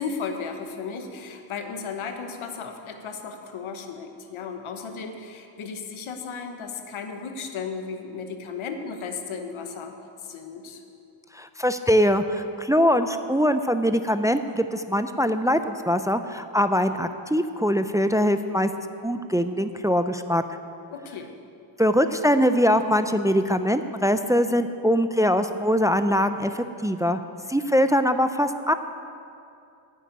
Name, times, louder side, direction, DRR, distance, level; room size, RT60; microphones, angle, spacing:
voice 1, 0.0-10.0 10.2-10.8 20.9-21.3, left 5 dB, 85° left, 5 dB, 1.3 m, -35 dB
voice 2, 11.3-18.7 19.0-20.4 21.8-27.2 27.5-28.7, equal, 5° right, 9 dB, 0.4 m, -22 dB
10.0 x 7.7 x 9.3 m, 2.6 s
cardioid pair, 70°, 47 cm